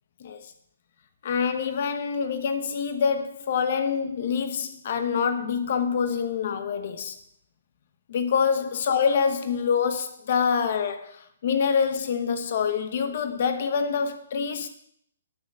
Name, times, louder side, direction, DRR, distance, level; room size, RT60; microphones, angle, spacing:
voice 1, 0.2-0.5 1.2-7.1 8.1-14.7, left 6 dB, 35° left, 9 dB, 0.9 m, -26 dB
9.5 x 6.6 x 7.2 m, 0.68 s
hypercardioid pair, 180°, 0 cm